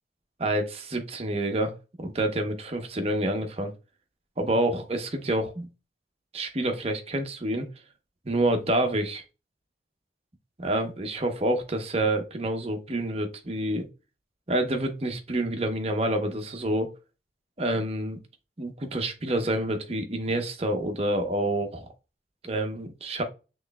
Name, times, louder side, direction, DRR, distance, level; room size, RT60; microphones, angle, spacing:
voice 1, 0.4-3.7 4.4-5.7 6.3-7.7 8.2-9.2 10.6-13.9 14.5-16.9 17.6-18.2 18.6-21.9 22.4-23.2, right 1 dB, 35° right, 0.8 m, -28 dB
6.3 x 3.1 x 2.2 m
head